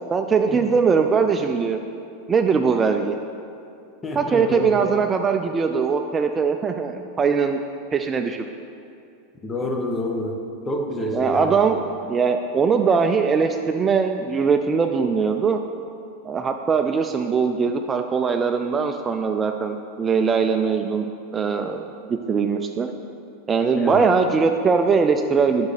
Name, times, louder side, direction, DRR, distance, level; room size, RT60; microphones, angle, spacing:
voice 1, 0.1-1.8 2.3-3.2 4.2-7.6 7.9-8.4 11.1-15.6 16.3-21.1 21.3-22.9 23.5-25.7, right 5 dB, 25° right, 6 dB, 0.3 m, -21 dB
voice 2, 4.0-4.8 9.4-10.4 10.7-11.6 23.8-24.0, left 1 dB, 20° left, 2 dB, 0.9 m, -27 dB
8.1 x 6.0 x 3.3 m, 2.5 s
hypercardioid pair, 100°, 0 cm